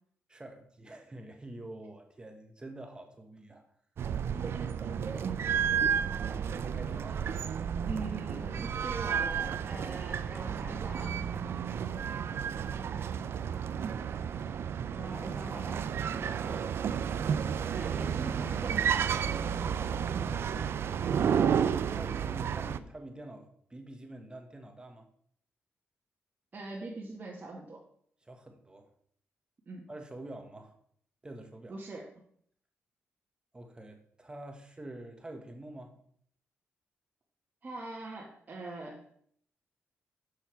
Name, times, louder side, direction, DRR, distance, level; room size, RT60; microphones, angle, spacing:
voice 1, 0.3-3.6 6.6-7.2 16.1-16.7 20.0-20.5 21.9-25.1 28.2-28.9 29.9-30.7 31.2-31.8 33.5-35.9, right 1 dB, 20° right, 4 dB, 1.4 m, -46 dB
sound 1, 4.0-22.8, right 7 dB, 65° right, 0.4 m, -32 dB
voice 2, 4.4-5.2 7.8-11.3 14.9-15.8 17.7-19.3 26.5-27.8 29.7-29.9 31.7-32.2 37.6-39.1, right 2 dB, 35° right, -3 dB, 1.6 m, -42 dB
6.8 x 6.6 x 4.6 m, 0.63 s
cardioid pair, 80°, 5 cm